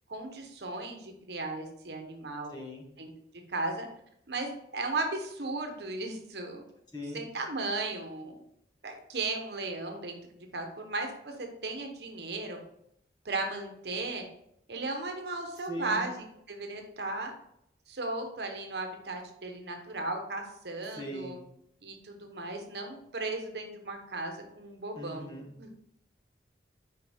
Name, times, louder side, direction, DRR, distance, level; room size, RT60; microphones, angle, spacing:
voice 1, 0.1-2.6 3.0-3.1 3.5-3.9 4.3-6.6 7.1-8.4 8.8-10.2 10.5-12.6 13.2-14.2 14.7-17.3 17.9-21.4 21.8-25.3 25.6-25.7, right 2 dB, 70° right, 4 dB, 1.1 m, -36 dB
voice 2, 2.5-2.8 6.9-7.3 15.7-16.1 21.0-21.4 24.9-25.5, equal, 25° left, -1 dB, 1.3 m, -39 dB
5.7 x 5.0 x 3.5 m, 0.74 s
head